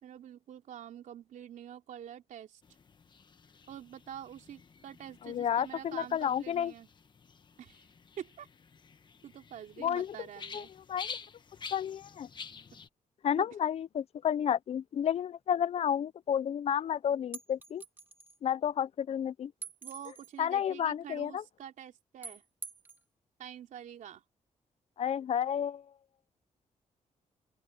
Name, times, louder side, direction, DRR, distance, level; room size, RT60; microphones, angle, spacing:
voice 1, 0.0-2.6 3.7-6.9 7.6-7.9 8.2-8.5 9.2-10.7 13.4-13.5 19.8-22.4 23.4-24.2, right 10 dB, 85° right, 3.4 m, -46 dB
sound 1, 2.6-12.9, left 5 dB, 35° left, 1.3 m, -49 dB
voice 2, 5.2-6.7 9.8-10.1 10.5-11.2 11.7-12.3 13.2-17.8 18.4-19.5 20.4-21.4 25.0-25.8, left 9 dB, 55° left, 0.5 m, -31 dB
sound 2, 17.3-18.4 19.6-20.4 22.2-23.0, right 4 dB, 15° right, 1.8 m, -45 dB
open air
wide cardioid pair, 150°, 13 cm